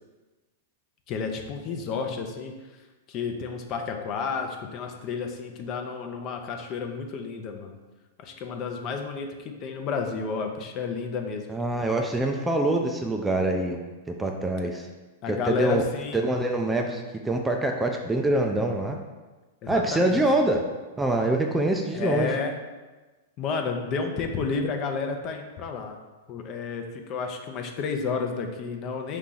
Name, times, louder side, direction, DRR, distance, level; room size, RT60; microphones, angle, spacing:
voice 1, 1.1-2.5 3.1-7.8 8.2-11.5 15.2-16.2 19.6-20.3 21.9-22.5 23.4-26.0 26.3-29.2, left 5 dB, 40° left, 4 dB, 0.6 m, -31 dB
voice 2, 11.5-13.8 14.2-14.9 15.3-15.8 16.1-19.0 19.7-20.6 21.0-22.3, right 2 dB, 10° right, 3 dB, 0.4 m, -25 dB
4.8 x 2.8 x 3.8 m, 1.2 s
hypercardioid pair, 120°, 0 cm